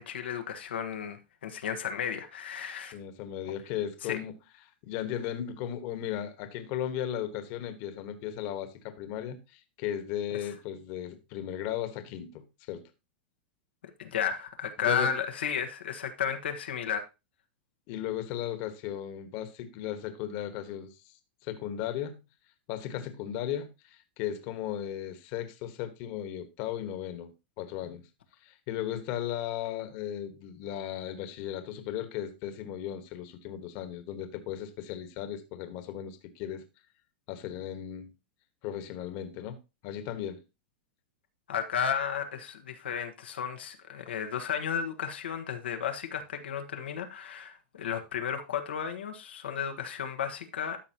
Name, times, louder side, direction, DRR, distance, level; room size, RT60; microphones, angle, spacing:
voice 1, 0.0-3.0 4.0-4.2 14.0-17.0 41.5-50.8, left 7 dB, 90° left, 1.2 m, -33 dB
voice 2, 2.9-4.3 4.8-12.8 14.8-15.1 17.9-21.1 21.4-22.2 22.7-28.0 28.4-36.6 37.3-38.1 38.6-39.6 39.8-40.4, left 10 dB, 50° left, 1.4 m, -36 dB
13.0 x 5.2 x 2.9 m
hypercardioid pair, 135°, 6 cm